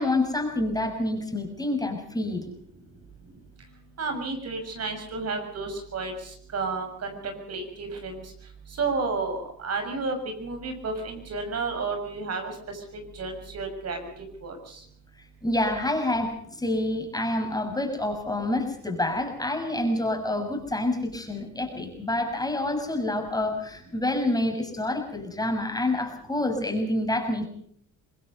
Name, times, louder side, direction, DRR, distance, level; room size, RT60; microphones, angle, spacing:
voice 1, 0.0-2.5 15.4-27.5, left 1 dB, 10° left, 4 dB, 6.6 m, -27 dB
voice 2, 4.0-6.1 6.5-8.2 8.8-12.5 12.9-14.0 14.4-14.6, right 4 dB, 55° right, 5 dB, 6.8 m, -31 dB
25.0 x 20.5 x 5.4 m, 0.63 s
cardioid pair, 90°, 30 cm